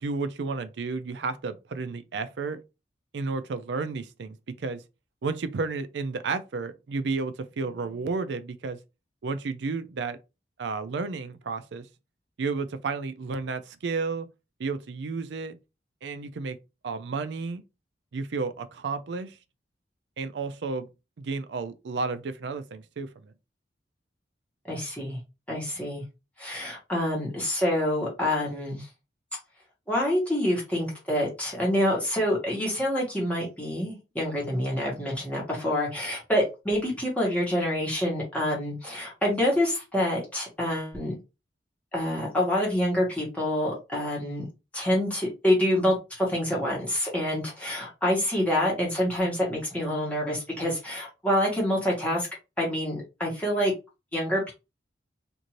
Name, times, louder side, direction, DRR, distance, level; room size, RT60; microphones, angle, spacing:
voice 1, 0.0-2.6 3.1-4.8 5.2-8.8 9.2-10.2 10.6-11.9 12.4-14.3 14.6-15.6 16.0-16.6 16.8-17.6 18.1-19.4 20.2-20.9 21.2-23.3, right 4 dB, 70° right, 0.4 m, -32 dB
voice 2, 24.6-25.2 25.5-26.0 26.4-28.9 29.9-41.1 41.9-44.5 44.7-52.3 52.6-53.7 54.1-54.5, left 1 dB, 10° left, 1.2 m, -27 dB
2.6 x 2.6 x 3.0 m
head